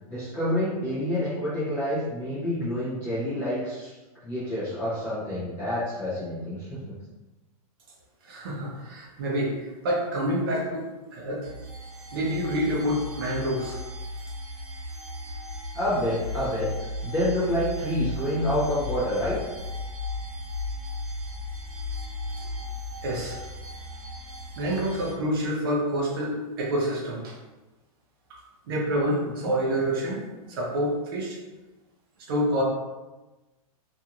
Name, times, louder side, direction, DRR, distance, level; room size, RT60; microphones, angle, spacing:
voice 1, 0.1-4.0 4.2-7.0 15.7-16.7 17.0-19.4 29.4-29.5, left 1 dB, 10° left, -10 dB, 0.4 m, -28 dB
voice 2, 8.2-11.5 12.1-13.8 22.4-22.5 23.0-23.4 24.6-27.4 28.3-28.4 28.7-31.4 32.3-32.6, equal, 40° right, -2 dB, 0.6 m, -28 dB
sound 1, 11.4-25.1, left 2 dB, 80° right, 0.8 m, -36 dB
2.5 x 2.4 x 2.8 m, 1.1 s
supercardioid pair, 170°, 19 cm